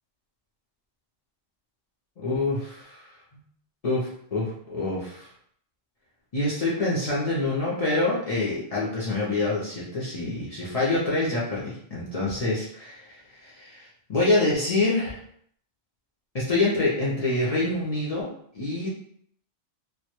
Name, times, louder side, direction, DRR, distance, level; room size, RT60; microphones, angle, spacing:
voice 1, 2.2-3.1 3.8-5.3 6.3-13.0 13.4-15.2 16.3-18.3 18.5-18.9, left 2 dB, 50° left, -7 dB, 0.4 m, -26 dB
2.1 x 2.1 x 2.9 m, 0.66 s
omnidirectional pair, 1.2 m